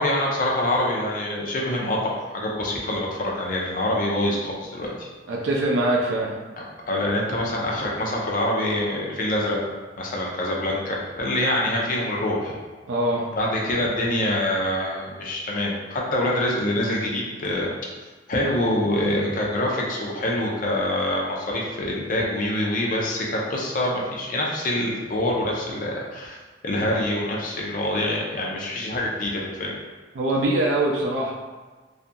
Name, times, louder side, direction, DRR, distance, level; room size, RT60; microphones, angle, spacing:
voice 1, 0.0-5.1 6.8-9.6 10.0-12.6 13.4-17.7 18.3-26.4 26.6-29.8, left 1 dB, 50° left, -3 dB, 0.5 m, -25 dB
voice 2, 5.3-6.3 12.9-13.2 30.2-31.3, right 1 dB, 85° right, -2 dB, 0.4 m, -23 dB
2.7 x 2.4 x 2.2 m, 1.3 s
head